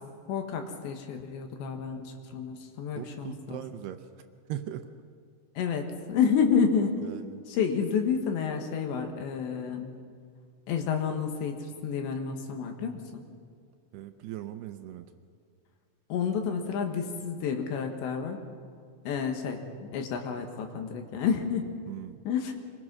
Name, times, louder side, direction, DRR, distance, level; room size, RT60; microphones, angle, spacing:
voice 1, 0.3-3.6 5.6-7.0 7.5-9.9 10.7-13.2 16.1-18.4 19.1-21.7 22.3-22.5, left 6 dB, 75° left, 4 dB, 3.6 m, -30 dB
voice 2, 3.0-4.9 7.0-7.4 13.9-15.1 21.9-22.2, right 12 dB, 80° right, 8 dB, 2.5 m, -40 dB
25.5 x 21.5 x 6.1 m, 2.2 s
omnidirectional pair, 5.4 m